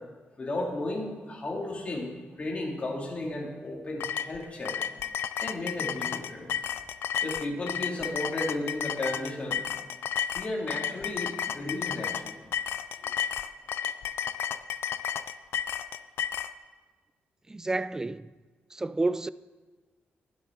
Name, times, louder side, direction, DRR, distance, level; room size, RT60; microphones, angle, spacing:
voice 1, 0.4-2.1 2.4-4.8 5.4-6.5 7.2-9.6 10.3-12.4, left 1 dB, 35° left, 2.6 m, -34 dB
sound 1, 4.0-16.5, left 9 dB, 85° left, 0.4 m, -32 dB
voice 2, 17.5-18.3 18.7-19.3, right 2 dB, 15° right, 0.3 m, -30 dB
21.0 x 7.3 x 3.9 m
cardioid pair, 115°, 4 cm